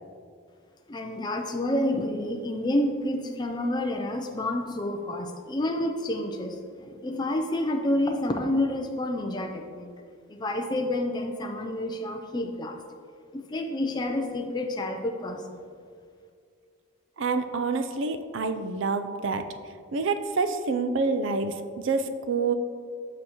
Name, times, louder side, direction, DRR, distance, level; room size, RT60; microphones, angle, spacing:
voice 1, 0.9-9.9 10.3-12.8 13.3-15.7, left 1 dB, 20° left, 3 dB, 0.4 m, -29 dB
voice 2, 17.2-19.5 19.9-22.5, right 4 dB, 60° right, 9 dB, 0.4 m, -27 dB
7.5 x 6.2 x 2.9 m, 2.2 s
head